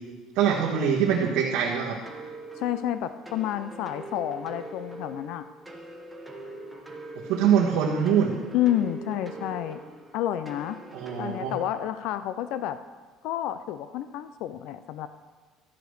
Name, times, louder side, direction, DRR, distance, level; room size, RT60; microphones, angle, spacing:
voice 1, 0.3-2.0 7.3-8.3 10.9-11.5, right 7 dB, 75° right, -4 dB, 1.4 m, -23 dB
sound 1, 2.0-11.7, right 2 dB, 5° right, 1.0 m, -43 dB
voice 2, 2.6-5.5 8.5-9.8 10.1-10.8 11.2-12.8 13.2-15.1, left 12 dB, 60° left, 11 dB, 0.4 m, -29 dB
13.5 x 5.0 x 6.4 m, 1.4 s
cardioid pair, 155°, 0 cm